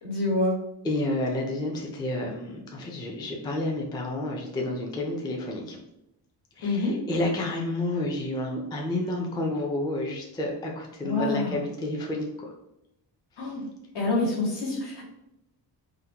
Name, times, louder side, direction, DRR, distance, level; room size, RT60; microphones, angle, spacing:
voice 1, 0.0-0.6 6.6-6.9 11.0-11.6 13.4-13.7 13.9-15.1, left 2 dB, 70° left, -3 dB, 1.3 m, -27 dB
voice 2, 0.8-5.8 6.6-12.5 13.4-13.5, left 2 dB, 10° left, 0 dB, 0.3 m, -30 dB
3.6 x 2.1 x 2.7 m, 0.85 s
cardioid pair, 140°, 42 cm